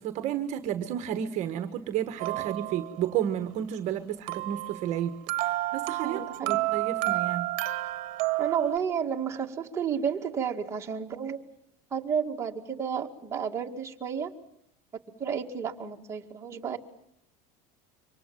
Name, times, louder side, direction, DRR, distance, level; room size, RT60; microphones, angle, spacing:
voice 1, 0.0-7.5, right 10 dB, 40° right, 9 dB, 1.4 m, -32 dB
sound 1, 2.2-3.1 4.3-8.8, right 18 dB, 60° right, 1.2 m, -30 dB
voice 2, 6.0-6.7 8.4-11.4 11.9-14.3 15.2-16.8, right 7 dB, 15° right, 0 dB, 2.1 m, -31 dB
27.5 x 25.0 x 7.6 m, 0.74 s
cardioid pair, 175°, 19 cm